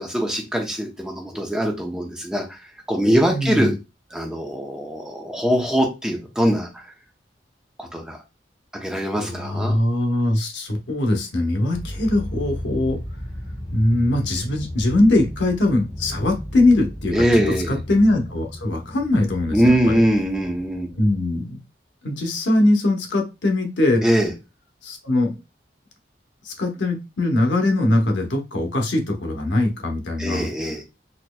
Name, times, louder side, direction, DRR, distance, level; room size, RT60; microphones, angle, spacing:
voice 1, 0.0-2.4 2.9-3.7 4.1-6.8 7.8-8.2 8.7-9.8 17.1-17.8 19.5-20.9 24.0-24.3 30.2-30.8, equal, 5° right, 1 dB, 0.6 m, -22 dB
voice 2, 3.3-3.7 9.2-13.0 13.7-20.0 21.0-21.6 22.0-24.0 24.8-25.4 26.4-30.5, left 1 dB, 85° left, 3 dB, 0.9 m, -21 dB
sound 1, 11.7-21.2, left 1 dB, 30° left, 1.5 m, -34 dB
4.2 x 2.9 x 2.2 m, 0.26 s
head